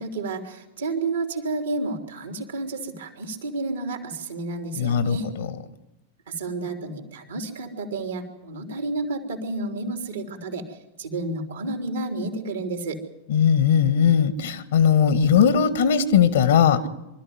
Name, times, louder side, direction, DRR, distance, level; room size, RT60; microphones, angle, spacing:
voice 1, 0.0-5.3 6.3-13.0, right 2 dB, 65° right, 6 dB, 3.3 m, -31 dB
voice 2, 4.7-5.2 13.3-16.8, left 7 dB, 60° left, 15 dB, 1.7 m, -19 dB
24.5 x 13.5 x 9.5 m, 0.96 s
figure-of-eight pair, 90°, 0 cm